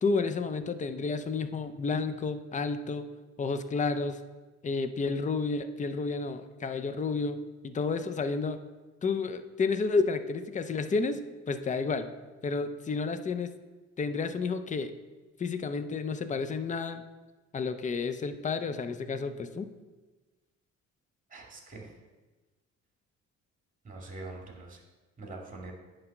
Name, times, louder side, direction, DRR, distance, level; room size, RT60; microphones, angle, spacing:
voice 1, 0.0-3.0 3.4-4.2 4.6-7.4 7.6-8.6 9.0-11.2 11.5-12.1 12.4-13.5 14.0-14.9 15.4-17.0 17.5-19.7, left 4 dB, 25° left, 10 dB, 0.5 m, -31 dB
voice 2, 21.3-21.9 23.8-24.8 25.2-25.7, right 2 dB, 25° right, -1 dB, 2.2 m, -43 dB
9.3 x 3.3 x 6.0 m, 1.2 s
cardioid pair, 90°, 30 cm